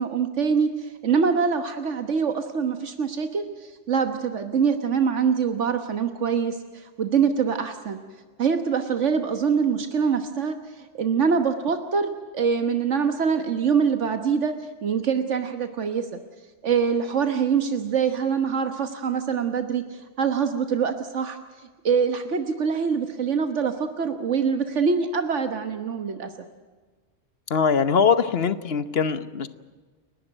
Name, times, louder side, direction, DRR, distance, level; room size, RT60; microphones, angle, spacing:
voice 1, 0.0-8.0 8.4-14.5 14.8-16.2 16.6-21.4 21.8-26.3, right 6 dB, 75° right, 8 dB, 1.5 m, -24 dB
voice 2, 27.5-29.5, left 6 dB, 55° left, 13 dB, 1.2 m, -22 dB
29.5 x 12.0 x 9.0 m, 1.4 s
omnidirectional pair, 1.2 m